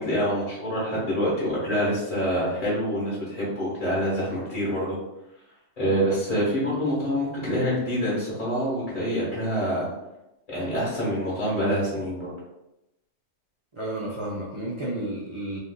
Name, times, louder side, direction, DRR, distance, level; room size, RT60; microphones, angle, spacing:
voice 1, 0.0-5.0 5.8-9.9 10.5-12.3, equal, 35° left, -9 dB, 1.1 m, -26 dB
voice 2, 13.7-15.6, right 1 dB, 50° right, -5 dB, 0.3 m, -32 dB
3.4 x 2.5 x 2.2 m, 0.91 s
omnidirectional pair, 1.3 m